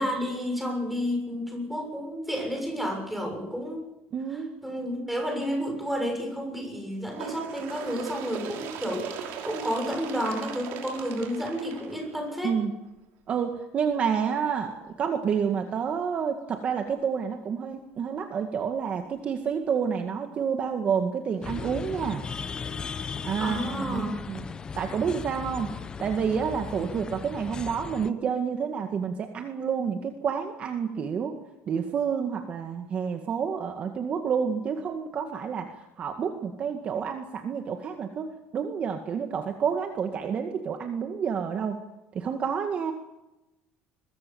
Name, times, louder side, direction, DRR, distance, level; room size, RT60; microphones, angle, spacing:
voice 1, 0.0-3.9 4.3-12.6 23.4-24.1, equal, ahead, 2 dB, 6.8 m, -31 dB
voice 2, 4.1-4.5 12.4-12.7 13.3-22.2 23.2-24.4 24.8-25.7 26.0-31.4 31.7-38.3 38.5-41.8 42.1-42.9, right 7 dB, 35° right, 5 dB, 2.0 m, -29 dB
Bird, 7.1-12.5 13.4-13.5 13.9-14.0 14.9-15.0 15.9-16.0 16.9-17.0, right 8 dB, 70° right, 5.6 m, -39 dB
sound 1, 21.4-28.1, left 5 dB, 20° left, 0.9 m, -37 dB
23.0 x 22.0 x 7.2 m, 0.97 s
cardioid pair, 165°, 4 cm